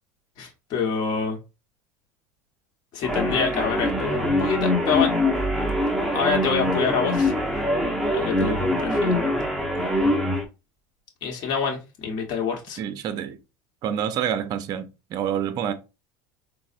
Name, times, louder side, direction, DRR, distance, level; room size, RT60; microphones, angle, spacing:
voice 1, 0.4-1.4 2.9-5.1 6.1-7.3 8.1-9.4 11.2-12.8, left 6 dB, 50° left, 0.9 m, -26 dB
sound 1, 3.0-10.4, left 1 dB, ahead, 0.7 m, -23 dB
voice 2, 12.8-13.4 13.8-15.7, right 9 dB, 45° right, 0.5 m, -27 dB
3.9 x 2.0 x 2.4 m
supercardioid pair, 110°, 9 cm